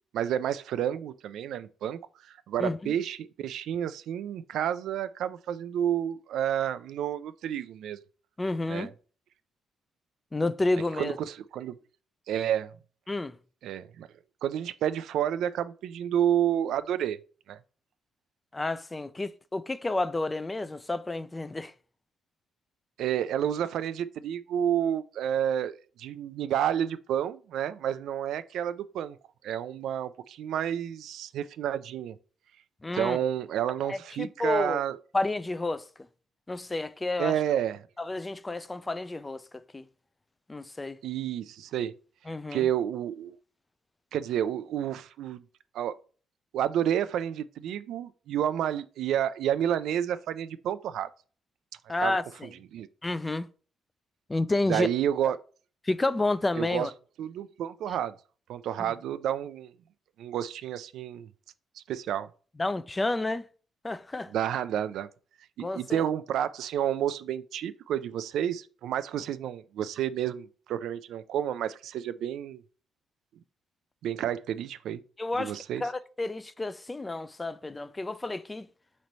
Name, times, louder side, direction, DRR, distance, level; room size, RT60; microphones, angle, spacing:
voice 1, 0.1-8.0 8.7-8.9 11.0-11.8 12.3-12.7 13.6-14.1 14.4-17.2 17.5-17.6 23.0-29.2 29.4-32.2 32.9-35.0 37.2-37.8 41.0-41.9 42.5-43.4 44.1-45.4 45.7-46.0 46.5-51.1 52.0-52.2 52.7-52.9 54.7-55.4 56.6-56.9 57.2-58.2 58.5-59.7 60.2-61.3 61.8-62.3 64.3-65.1 65.6-72.6 74.0-75.0 75.4-75.9, right 10 dB, 80° right, 0.3 m, -30 dB
voice 2, 2.6-2.9 8.4-8.9 10.3-11.2 13.1-13.4 18.5-21.7 32.8-33.2 33.9-34.8 35.1-35.8 36.5-37.3 38.0-39.8 40.5-41.0 42.3-42.7 51.9-52.5 53.0-53.5 54.3-54.9 55.8-56.9 58.8-58.9 62.6-63.5 63.8-64.3 65.6-66.0 75.2-75.5 75.8-78.7, left 2 dB, 20° left, 0.4 m, -30 dB
4.2 x 3.1 x 4.0 m
cardioid pair, 90°, 0 cm